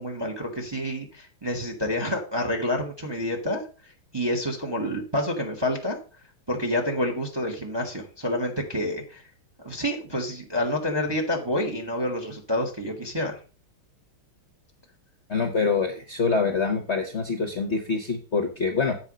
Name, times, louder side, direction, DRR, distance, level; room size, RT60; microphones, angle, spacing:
voice 1, 0.0-6.0 6.5-9.2 9.6-13.4, left 1 dB, 15° right, 3 dB, 1.2 m, -28 dB
voice 2, 15.3-18.9, left 4 dB, 40° left, 4 dB, 1.1 m, -25 dB
8.1 x 4.8 x 6.2 m, 0.36 s
omnidirectional pair, 2.3 m